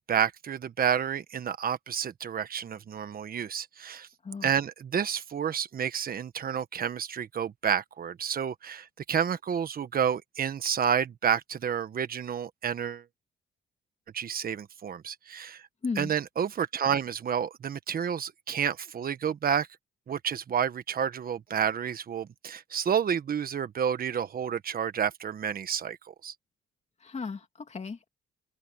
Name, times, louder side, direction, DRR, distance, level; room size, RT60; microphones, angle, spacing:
voice 1, 0.0-4.1 4.4-13.0 14.1-15.7 16.0-19.7 20.1-26.3, right 8 dB, 50° right, 1.3 m, -30 dB
voice 2, 15.8-16.1 27.0-28.1, left 4 dB, 35° left, 2.5 m, -35 dB
open air
cardioid pair, 90°, 20 cm